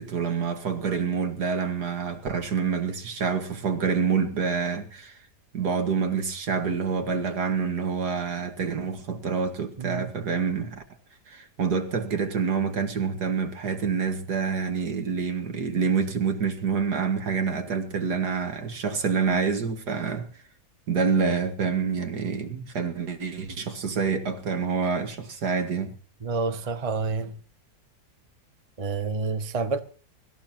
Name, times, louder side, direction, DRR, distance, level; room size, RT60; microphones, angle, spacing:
voice 1, 0.0-5.2 5.5-10.8 11.3-20.3 20.9-25.9, right 5 dB, 65° right, 2.2 m, -27 dB
voice 2, 9.8-10.1 26.2-27.3 28.8-29.8, right 4 dB, 25° right, 1.0 m, -28 dB
24.5 x 14.0 x 2.9 m
omnidirectional pair, 1.9 m